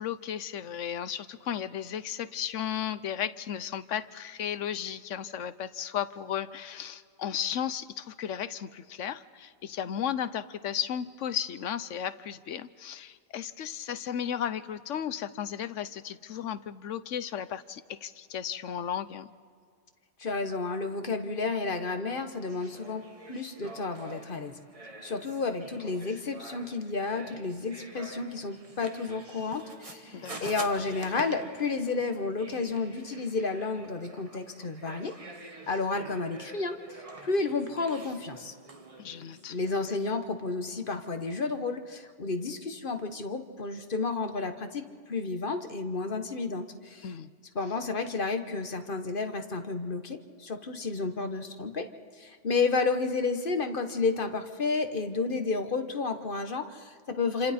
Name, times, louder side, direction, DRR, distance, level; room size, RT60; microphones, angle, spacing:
voice 1, 0.0-19.3 30.1-30.5 39.0-39.6 47.0-47.3, left 9 dB, 80° left, 14 dB, 1.1 m, -34 dB
voice 2, 20.2-24.6 25.0-35.1 35.7-38.5 39.5-47.1 47.5-51.9 52.2-57.5, left 4 dB, 45° left, 7 dB, 1.3 m, -31 dB
sound 1, 22.4-40.0, right 2 dB, 30° right, 1.3 m, -47 dB
28.5 x 26.5 x 4.3 m, 2.1 s
omnidirectional pair, 1.3 m